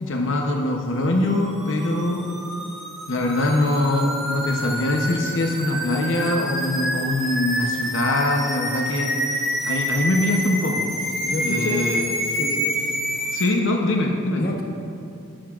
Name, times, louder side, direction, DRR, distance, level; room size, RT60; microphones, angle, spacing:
voice 1, 0.0-2.2 3.1-10.9 11.4-12.0 13.3-14.5, left 1 dB, 70° left, 1 dB, 0.8 m, -23 dB
sound 1, 1.2-13.5, equal, ahead, 1.2 m, -28 dB
voice 2, 11.2-11.8 12.4-12.7 14.4-14.6, left 1 dB, 45° left, 1 dB, 1.0 m, -28 dB
12.5 x 12.0 x 2.5 m, 2.6 s
head